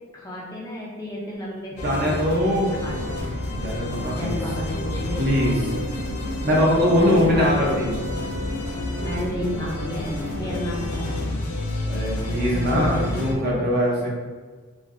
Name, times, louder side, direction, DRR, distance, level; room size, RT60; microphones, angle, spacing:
voice 1, 0.1-3.2 4.1-5.2 6.9-8.2 9.0-11.3 12.5-13.7, equal, 15° left, -5 dB, 0.4 m, -32 dB
Human voice, 1.6-1.8 2.8-2.9 3.5-3.7 4.7-4.8 5.1-6.5 6.8-10.3 10.7-10.8 11.7-11.8, right 1 dB, 65° right, 1.1 m, -42 dB
sound 1, 1.8-13.3, left 2 dB, 85° left, 0.4 m, -30 dB
voice 2, 1.8-2.8 3.6-4.4 5.2-5.5 6.4-7.9 11.9-14.1, equal, 45° right, -3 dB, 0.6 m, -21 dB
sound 2, 2.9-10.9, equal, 90° right, 0.9 m, -35 dB
3.1 x 2.3 x 2.5 m, 1.5 s
head